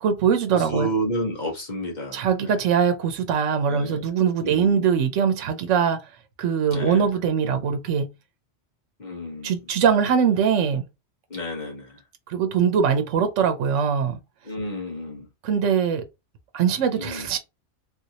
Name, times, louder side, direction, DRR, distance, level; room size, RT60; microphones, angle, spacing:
voice 1, 0.0-0.9 2.1-6.0 6.4-8.1 9.4-10.8 12.3-14.2 15.4-16.0 16.5-17.4, right 7 dB, 80° right, 1.0 m, -22 dB
voice 2, 0.5-2.6 3.7-4.1 4.4-4.9 6.7-7.1 9.0-9.6 11.3-11.9 14.5-15.3 16.9-17.3, equal, 40° left, 1.2 m, -31 dB
3.5 x 2.7 x 2.8 m
omnidirectional pair, 1.3 m